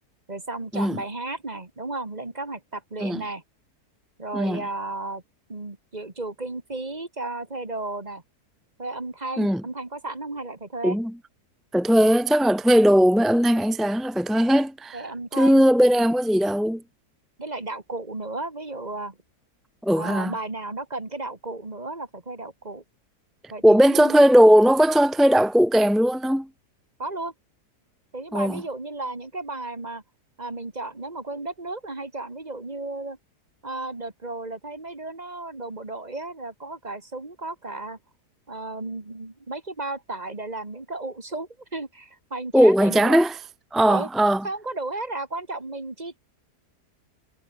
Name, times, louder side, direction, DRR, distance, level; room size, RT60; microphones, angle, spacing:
voice 1, 0.3-3.4 4.2-5.2 5.5-8.2 8.8-11.0 14.9-15.6 17.4-19.2 19.9-22.8 23.5-24.3 27.0-27.3 28.1-30.0 30.4-33.2 33.6-38.0 38.5-43.2 43.9-44.1 44.4-46.2, right 2 dB, 25° right, 2.4 m, -34 dB
voice 2, 11.7-15.0 15.3-16.8 19.8-20.3 23.6-26.5 28.3-28.6 42.5-43.4 43.7-44.5, equal, ahead, 0.4 m, -18 dB
omnidirectional pair, 1.7 m